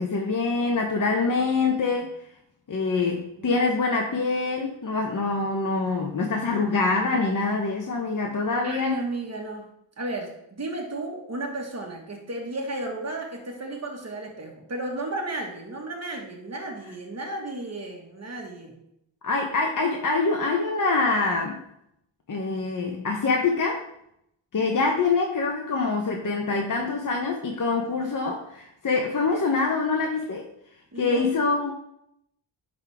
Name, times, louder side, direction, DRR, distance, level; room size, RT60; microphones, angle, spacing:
voice 1, 0.0-2.1 2.7-9.0 19.2-21.6 22.3-23.8 24.5-30.5 31.0-31.7, left 3 dB, 45° left, 1 dB, 1.0 m, -25 dB
voice 2, 8.6-9.7 10.0-18.8 30.9-31.7, right 2 dB, 35° right, 1 dB, 1.8 m, -34 dB
10.5 x 3.9 x 3.5 m, 0.77 s
cardioid pair, 75°, 45 cm